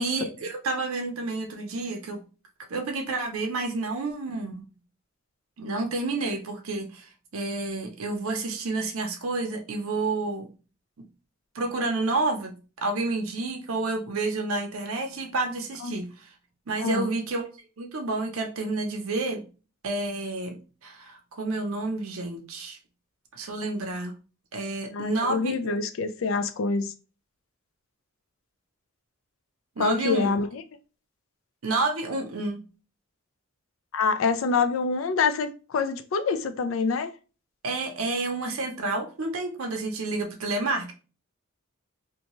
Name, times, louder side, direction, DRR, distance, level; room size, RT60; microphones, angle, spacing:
voice 1, 0.0-2.2 2.7-4.7 5.6-10.5 11.5-12.5 12.8-16.3 16.7-17.4 17.8-19.4 19.8-20.5 20.8-22.8 23.4-24.1 24.5-25.8 29.8-30.4 31.6-32.6 37.6-40.9, right 3 dB, 80° right, 0.6 m, -29 dB
voice 2, 16.8-17.1 24.9-26.9 29.8-30.6 33.9-37.1, left 4 dB, 65° left, 0.4 m, -26 dB
2.6 x 2.2 x 3.0 m
head